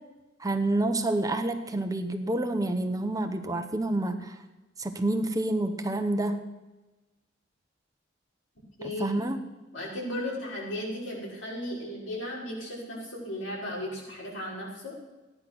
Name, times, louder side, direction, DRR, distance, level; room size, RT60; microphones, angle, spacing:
voice 1, 0.4-4.4 4.8-6.4 9.0-9.4, right 2 dB, 20° right, 6 dB, 0.9 m, -28 dB
voice 2, 8.8-9.1 9.7-14.9, left 1 dB, 85° left, -5 dB, 5.6 m, -35 dB
15.0 x 10.0 x 6.2 m, 1.1 s
head